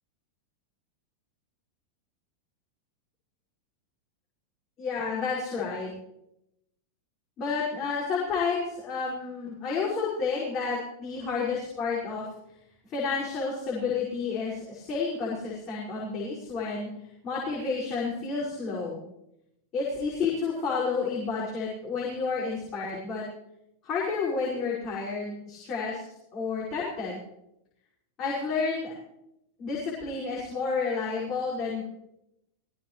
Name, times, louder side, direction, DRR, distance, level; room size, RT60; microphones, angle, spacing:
voice 1, 4.8-5.9 7.4-12.3 12.8-16.9 17.2-19.0 19.7-23.3 23.8-26.0 26.3-27.2 28.2-29.0 29.6-31.8, left 4 dB, 30° left, -6 dB, 5.8 m, -30 dB
21.0 x 16.5 x 3.2 m, 0.83 s
figure-of-eight pair, 90°, 0 cm